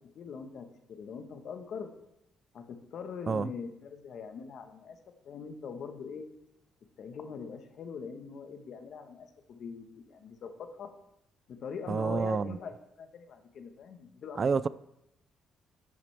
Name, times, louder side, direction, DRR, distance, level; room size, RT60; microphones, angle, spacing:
voice 1, 0.1-1.9 2.5-5.0 5.2-6.3 7.0-10.9 11.5-14.6, left 6 dB, 65° left, 1.2 m, -42 dB
voice 2, 11.9-12.6 14.4-14.7, right 5 dB, 40° right, 0.3 m, -28 dB
11.0 x 8.7 x 3.4 m
cardioid pair, 90°, 0 cm